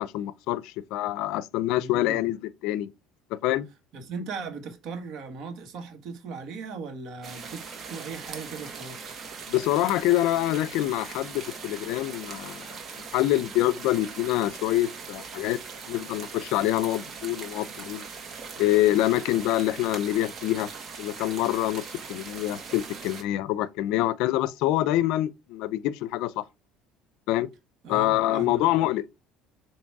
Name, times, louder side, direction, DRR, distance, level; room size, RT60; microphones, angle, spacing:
voice 1, 0.0-2.4 2.6-2.9 3.3-3.7 9.5-12.8 13.1-15.6 15.9-18.0 18.6-20.7 21.0-26.4 27.3-27.5 27.9-29.0, left 15 dB, 75° left, 0.4 m, -26 dB
voice 2, 1.8-2.2 3.9-9.1 27.8-28.6, right 4 dB, 60° right, 1.6 m, -38 dB
sound 1, 7.2-23.2, right 5 dB, 40° right, 1.6 m, -40 dB
7.2 x 3.0 x 4.6 m
cardioid pair, 115°, 0 cm